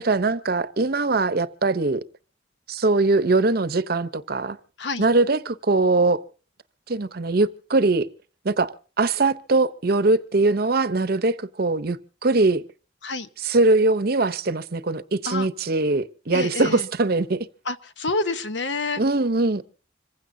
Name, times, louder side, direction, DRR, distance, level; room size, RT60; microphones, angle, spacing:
voice 1, 0.0-2.0 2.7-4.6 5.0-6.2 6.9-8.1 8.4-8.7 9.0-12.6 13.4-17.5 19.0-19.6, right 3 dB, 50° right, 0.8 m, -21 dB
voice 2, 16.3-16.9 17.6-19.0, left 3 dB, 65° left, 1.0 m, -28 dB
26.5 x 16.0 x 2.7 m
head